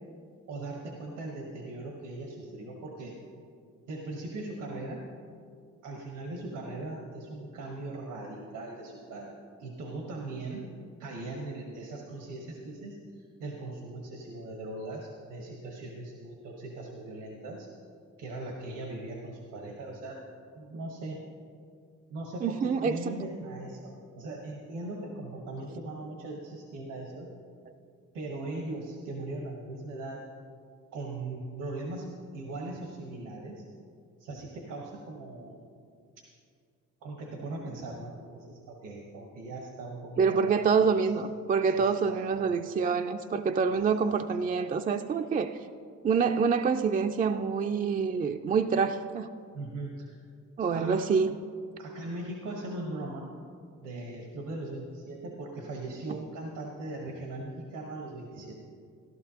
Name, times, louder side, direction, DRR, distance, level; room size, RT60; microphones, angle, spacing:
voice 1, 0.5-3.1 3.9-5.0 5.8-10.6 11.0-17.7 18.2-20.2 20.5-21.2 22.1-27.3 28.1-30.2 30.9-33.6 34.2-35.6 37.0-41.1 41.7-42.5 43.9-44.2 49.5-50.2 50.7-51.1 51.8-53.3 53.8-58.6, right 2 dB, 90° right, 0 dB, 1.3 m, -39 dB
voice 2, 22.4-23.1 40.2-45.6 46.0-49.3 50.6-51.3, right 5 dB, 30° right, 7 dB, 0.3 m, -26 dB
14.0 x 12.0 x 2.9 m, 2.3 s
cardioid pair, 90°, 30 cm